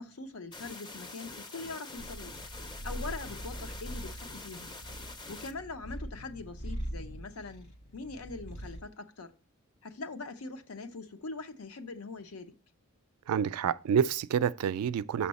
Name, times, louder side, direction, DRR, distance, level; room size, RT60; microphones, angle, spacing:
voice 1, 0.0-2.3 2.8-4.7 5.3-7.7 7.9-9.3 9.8-12.6, left 3 dB, 80° left, 0.7 m, -42 dB
sound 1, 0.5-5.5, left 3 dB, 20° left, 0.4 m, -45 dB
Purr, 2.0-8.9, equal, 55° left, 1.1 m, -42 dB
voice 2, 13.3-15.3, right 7 dB, 90° right, 0.3 m, -28 dB
6.2 x 5.7 x 4.1 m
head